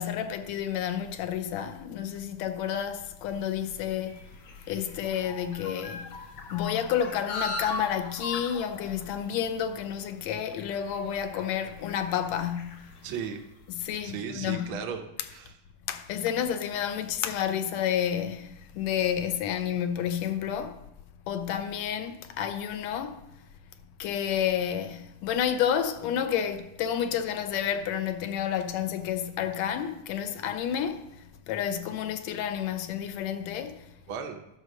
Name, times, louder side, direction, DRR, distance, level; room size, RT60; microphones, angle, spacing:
voice 1, 0.0-4.2 4.7-6.2 6.5-12.9 13.7-14.8 15.2-15.4 15.9-20.8 21.3-23.2 24.0-31.1 31.5-33.8, left 9 dB, 75° left, 1.7 m, -30 dB
sound 1, 3.1-13.7, left 3 dB, 60° left, 1.5 m, -41 dB
voice 2, 13.0-13.4 14.0-15.6 34.1-34.4, right 7 dB, 80° right, 1.1 m, -36 dB
11.5 x 5.2 x 6.4 m
omnidirectional pair, 3.6 m